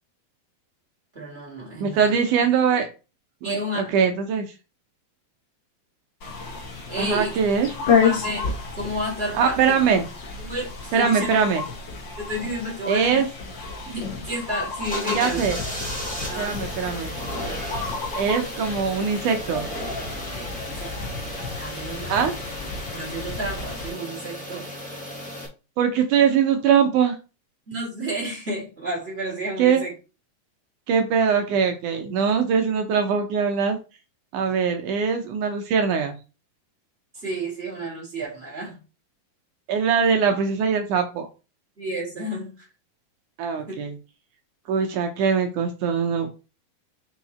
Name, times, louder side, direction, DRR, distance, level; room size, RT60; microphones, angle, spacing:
voice 1, 1.1-2.1 3.4-3.8 6.9-7.4 8.0-9.6 10.4-11.3 12.2-13.2 13.8-15.4 16.3-16.6 20.3-20.9 21.4-22.2 22.9-24.7 27.7-29.9 37.1-38.8 41.8-42.6 43.7-43.8, right 1 dB, 20° right, 2.3 m, -31 dB
voice 2, 1.8-2.9 3.4-4.5 7.0-7.7 9.4-10.0 10.9-11.6 12.9-13.3 15.1-15.6 16.4-17.1 18.2-19.7 22.1-22.3 25.8-27.2 29.6-29.8 30.9-33.8 34.3-36.2 39.7-41.3 43.4-44.0 44.7-46.3, right 6 dB, 75° right, 2.0 m, -22 dB
sound 1, 6.2-23.9, left 5 dB, 50° left, 1.4 m, -30 dB
sound 2, 14.8-25.5, equal, 5° left, 0.8 m, -35 dB
5.8 x 4.5 x 4.2 m
omnidirectional pair, 4.3 m